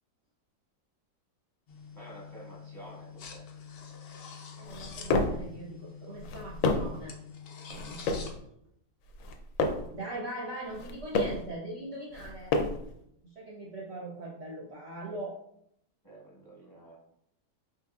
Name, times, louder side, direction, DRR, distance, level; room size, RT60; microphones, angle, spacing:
sound 1, 1.7-8.3, left 6 dB, 90° left, 0.5 m, -46 dB
voice 1, 1.9-3.5 16.0-16.9, right 1 dB, 15° left, -5 dB, 1.0 m, -50 dB
sound 2, 4.6-5.5 6.1-7.0 7.7-8.4 9.1-9.9 10.6-11.5 12.1-12.9, left 3 dB, 70° left, 0.8 m, -30 dB
voice 2, 4.6-7.2 7.7-8.2 9.9-12.6 13.2-15.4, right 1 dB, 55° right, -4 dB, 0.7 m, -41 dB
4.6 x 3.1 x 2.4 m, 0.74 s
omnidirectional pair, 1.7 m